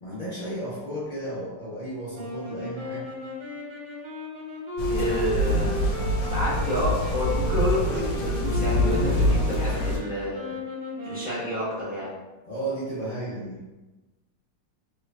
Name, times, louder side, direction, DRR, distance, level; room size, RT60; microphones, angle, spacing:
voice 1, 0.0-3.1 12.5-13.6, right 1 dB, 70° left, -10 dB, 0.4 m, -33 dB
sound 1, 2.1-12.2, left 1 dB, 70° right, 1.3 m, -35 dB
sound 2, 4.8-10.0, left 1 dB, 90° left, 1.3 m, -25 dB
voice 2, 4.9-5.7 6.2-10.5 11.0-12.1, equal, 10° right, -10 dB, 0.5 m, -29 dB
3.1 x 2.4 x 3.2 m, 1.1 s
omnidirectional pair, 2.0 m